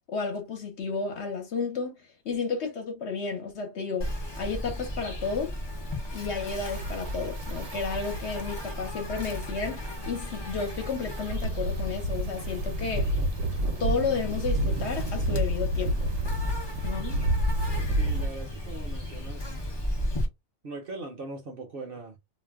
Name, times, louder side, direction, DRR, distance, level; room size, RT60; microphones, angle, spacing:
voice 1, 0.0-2.0 2.2-4.1 4.4-5.5 6.1-13.2 13.8-16.1 16.8-17.2, left 5 dB, 60° left, 1.0 m, -32 dB
Insect, 4.0-20.3, left 1 dB, 35° left, 0.4 m, -35 dB
sound 1, 6.7-18.3, right 1 dB, 75° right, 1.0 m, -31 dB
voice 2, 17.9-19.5 20.6-22.2, right 2 dB, 50° right, 0.8 m, -40 dB
2.5 x 2.1 x 3.4 m
omnidirectional pair, 1.4 m